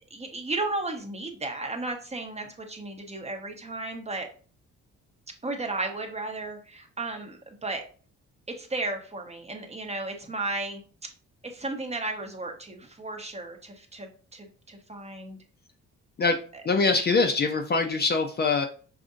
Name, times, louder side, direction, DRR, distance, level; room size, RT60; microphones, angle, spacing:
voice 1, 0.1-4.3 5.4-7.8 8.5-10.8 11.4-15.4 16.5-16.6 17.2-17.3, right 2 dB, 20° right, 4 dB, 0.8 m, -34 dB
voice 2, 16.6-18.7, left 4 dB, 35° left, 4 dB, 0.5 m, -23 dB
5.0 x 2.6 x 2.5 m, 0.40 s
cardioid pair, 90°, 30 cm